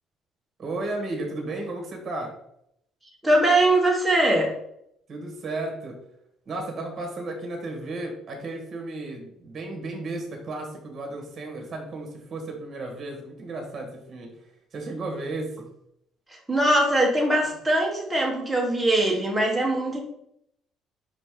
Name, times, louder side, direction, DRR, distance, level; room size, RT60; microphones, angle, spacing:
voice 1, 0.6-2.3 5.1-6.0 6.4-14.3 14.7-15.7, right 2 dB, 30° right, 2 dB, 1.6 m, -34 dB
voice 2, 3.2-4.5 16.5-20.0, right 1 dB, 5° right, -2 dB, 1.4 m, -21 dB
5.5 x 5.1 x 3.8 m, 0.74 s
cardioid pair, 165°, 0 cm